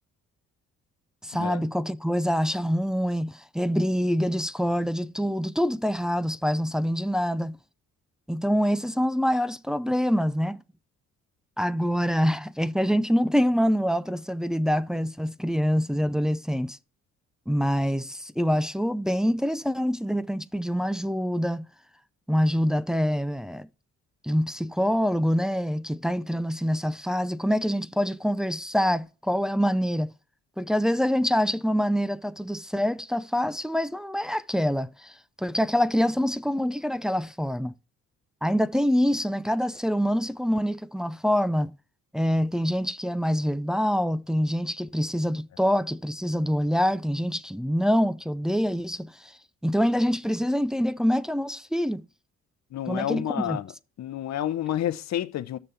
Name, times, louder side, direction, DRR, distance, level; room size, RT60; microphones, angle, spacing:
voice 1, 1.2-7.6 8.3-10.6 11.6-16.8 17.5-21.7 22.3-23.7 24.2-30.1 30.6-37.7 38.4-41.7 42.1-49.3 49.6-52.1 52.9-53.6, equal, ahead, 0.4 m, -25 dB
voice 2, 52.7-53.7 54.0-55.6, left 11 dB, 60° left, 0.8 m, -29 dB
6.9 x 6.7 x 4.4 m
cardioid pair, 90°, 30 cm